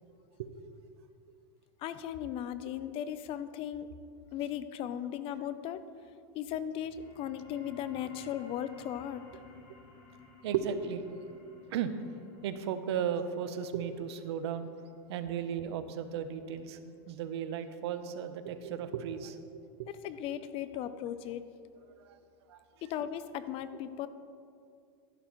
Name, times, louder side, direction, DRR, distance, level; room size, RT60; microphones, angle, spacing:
voice 1, 1.8-3.9 4.3-5.8 6.3-9.3 19.9-21.4 22.8-24.1, left 10 dB, 40° left, 13 dB, 0.5 m, -37 dB
sound 1, 6.7-17.8, left 3 dB, 60° left, 2.8 m, -57 dB
voice 2, 10.4-11.4 11.7-11.9 12.4-14.7 15.1-16.8 17.1-19.9 22.1-22.2 22.5-22.6, right 8 dB, 80° right, 10 dB, 0.8 m, -35 dB
11.5 x 11.0 x 3.1 m, 2.4 s
supercardioid pair, 130°, 14 cm